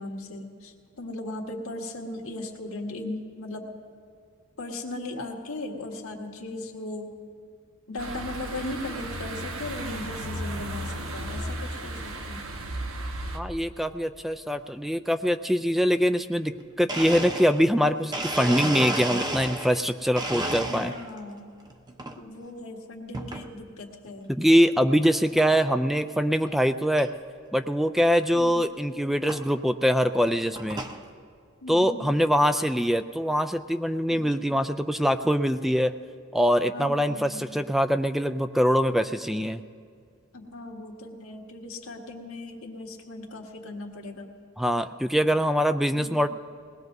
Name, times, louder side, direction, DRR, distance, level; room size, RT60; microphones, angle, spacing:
voice 1, 0.0-3.7 4.6-7.1 7.9-12.5 20.4-21.5 22.1-24.3 28.3-28.6 31.6-32.1 34.1-34.5 36.7-37.6 40.3-44.3, left 2 dB, 90° left, 1 dB, 1.7 m, -38 dB
sound 1, 8.0-13.4, right 1 dB, 80° right, 1.2 m, -34 dB
voice 2, 13.3-16.5 16.8-20.9 24.3-27.1 27.5-30.8 31.7-35.9 36.3-39.6 44.6-46.3, equal, ahead, 9 dB, 0.3 m, -23 dB
Domestic sounds home sounds, 16.5-16.6 16.9-19.8 20.2-21.2 21.7-22.2 23.1-23.5 24.1-24.2 25.0-25.1 25.4-25.7 26.1-26.2 26.4-26.5 27.0-27.1 28.4-28.5 29.3-29.4 30.1-31.0, right 1 dB, 20° right, 0.8 m, -32 dB
21.5 x 19.0 x 2.7 m, 2.2 s
head